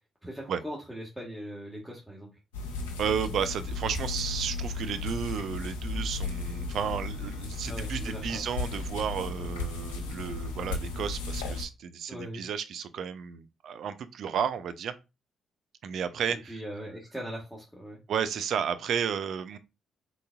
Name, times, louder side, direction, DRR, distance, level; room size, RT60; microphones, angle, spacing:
voice 1, 0.2-2.3 7.7-8.4 12.1-12.4 16.3-18.0, equal, 5° right, 1.4 m, -40 dB
sound 1, 2.5-11.6, left 3 dB, 90° left, 0.8 m, -35 dB
voice 2, 3.0-14.9 15.8-16.6 18.1-19.6, right 7 dB, 65° right, 0.4 m, -32 dB
3.9 x 3.8 x 2.3 m
hypercardioid pair, 45°, 0 cm